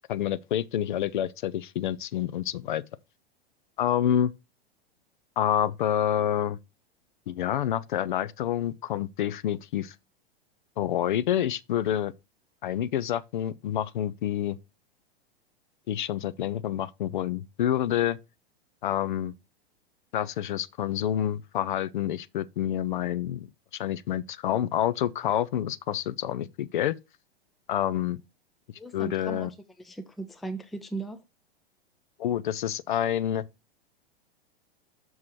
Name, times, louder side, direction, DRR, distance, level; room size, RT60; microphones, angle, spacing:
voice 1, 0.1-2.8 3.8-4.3 5.4-6.6 7.3-9.9 10.8-12.1 12.6-14.6 15.9-18.2 18.8-19.3 20.1-23.5 23.7-26.9 27.7-28.2 28.9-29.5 32.2-33.4, left 11 dB, 55° left, 0.5 m, -28 dB
voice 2, 28.8-29.5 29.8-31.2, right 3 dB, ahead, 0.4 m, -37 dB
6.3 x 4.7 x 5.6 m
figure-of-eight pair, 100°, 31 cm